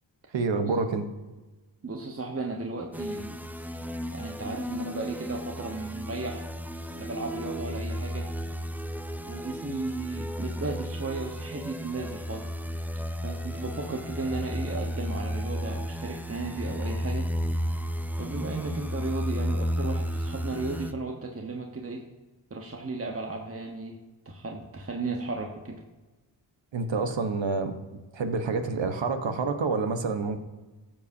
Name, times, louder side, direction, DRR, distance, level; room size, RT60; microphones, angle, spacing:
voice 1, 0.3-1.1 26.7-27.7 28.1-30.4, right 4 dB, 65° right, 7 dB, 1.2 m, -28 dB
voice 2, 1.8-3.4 4.1-6.4 6.9-8.3 9.2-12.5 13.2-17.3 18.2-22.1 22.5-24.0 24.2-25.8, right 3 dB, 30° right, 1 dB, 1.2 m, -35 dB
sound 1, 2.9-20.9, equal, 5° right, 0.5 m, -33 dB
13.5 x 7.1 x 2.7 m, 1.2 s
cardioid pair, 55°, 48 cm